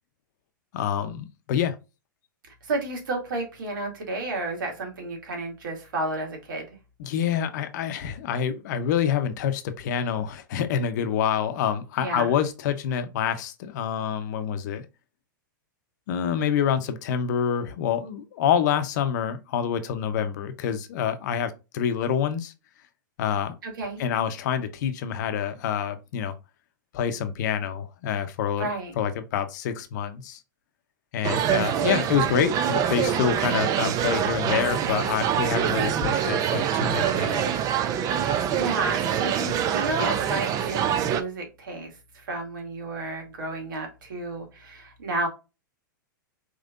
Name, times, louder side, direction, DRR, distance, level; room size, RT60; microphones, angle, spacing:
voice 1, 0.7-1.8 7.0-14.8 16.1-22.5 23.2-23.5 24.0-26.3 26.9-28.7 29.0-30.4 31.1-37.5, left 8 dB, 60° left, 0.7 m, -27 dB
voice 2, 2.6-6.7 12.0-12.3 23.6-24.0 28.5-28.9 38.1-45.3, right 2 dB, 70° right, 2.1 m, -32 dB
sound 1, 31.2-41.2, right 9 dB, 35° right, 0.6 m, -25 dB
5.2 x 3.2 x 2.5 m
hypercardioid pair, 115°, 11 cm